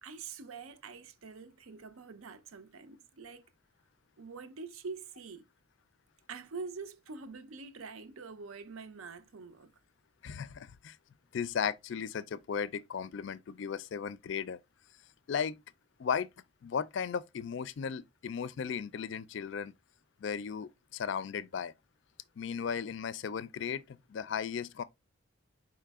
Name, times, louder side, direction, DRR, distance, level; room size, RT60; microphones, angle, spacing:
voice 1, 0.0-3.4 4.2-5.4 6.3-9.7, right 4 dB, 85° right, 0.6 m, -45 dB
voice 2, 10.2-11.0 11.3-14.6 15.3-15.6 16.0-16.3 16.6-19.7 20.2-21.7 22.4-24.8, left 7 dB, 60° left, 0.3 m, -36 dB
4.8 x 3.1 x 3.5 m
head